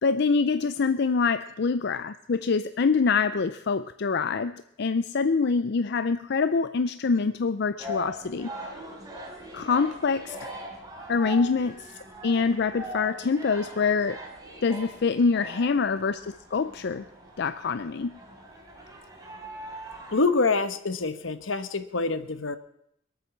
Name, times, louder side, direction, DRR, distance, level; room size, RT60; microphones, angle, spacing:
voice 1, 0.0-8.5 9.5-10.5 11.1-11.9 12.2-14.2 14.6-17.0 17.4-18.1, left 4 dB, 60° left, 12 dB, 0.5 m, -25 dB
sound 1, 7.8-20.2, equal, 20° right, 3.8 m, -41 dB
voice 2, 20.1-22.6, left 3 dB, 80° left, 11 dB, 1.1 m, -26 dB
22.0 x 8.9 x 7.3 m, 0.75 s
head